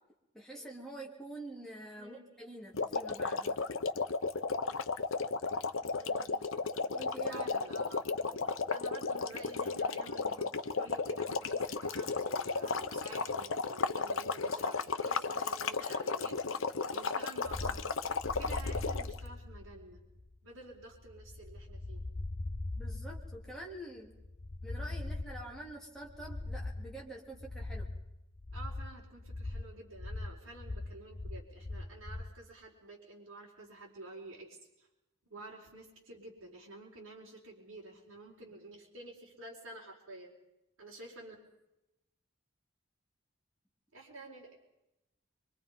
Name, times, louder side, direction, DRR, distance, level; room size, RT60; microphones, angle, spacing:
voice 1, 0.3-3.6 6.9-7.5 22.8-24.1 24.6-27.9, right 1 dB, ahead, -3 dB, 3.3 m, -46 dB
voice 2, 2.0-2.3 5.8-6.6 7.3-8.1 8.7-16.4 16.9-18.1 18.4-20.0 20.4-22.0 28.5-34.9 35.3-40.3 40.8-41.3 43.9-44.6, right 2 dB, 70° right, -4 dB, 4.6 m, -50 dB
sound 1, 2.7-19.2, left 4 dB, 75° left, 1.0 m, -34 dB
sound 2, 17.5-32.4, left 2 dB, 35° left, 0.7 m, -41 dB
25.0 x 24.5 x 5.5 m, 0.91 s
head